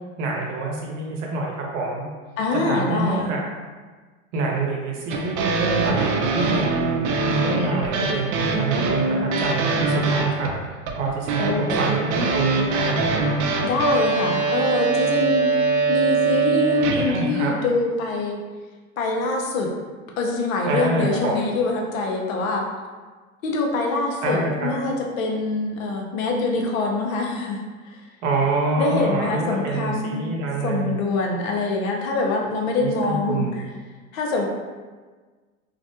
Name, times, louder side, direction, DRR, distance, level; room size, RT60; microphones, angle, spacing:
voice 1, 0.2-2.1 2.6-3.4 4.3-6.7 7.3-13.3 17.1-17.5 20.7-21.5 24.2-24.7 28.2-31.0 32.8-33.5, right 3 dB, 60° right, -1 dB, 0.8 m, -26 dB
voice 2, 2.4-3.3 11.4-11.8 13.6-15.5 15.9-18.4 19.0-19.7 20.2-22.7 23.4-28.0 28.8-30.3 30.6-33.6 34.1-34.5, left 3 dB, 70° left, 0 dB, 0.7 m, -24 dB
sound 1, 5.1-17.3, right 4 dB, 40° right, 0.4 m, -23 dB
2.4 x 2.0 x 2.8 m, 1.4 s
hypercardioid pair, 105°, 41 cm